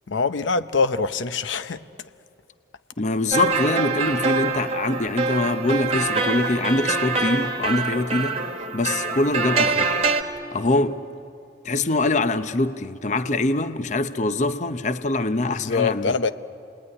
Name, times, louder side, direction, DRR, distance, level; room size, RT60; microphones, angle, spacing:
voice 1, 0.1-1.8 15.5-16.3, left 4 dB, 80° left, 0.7 m, -24 dB
voice 2, 3.0-8.4 8.7-9.9 10.5-11.0 11.6-16.2, left 2 dB, 40° left, 0.7 m, -24 dB
sound 1, 3.3-10.2, right 4 dB, 35° right, 1.5 m, -24 dB
29.0 x 20.0 x 9.8 m
head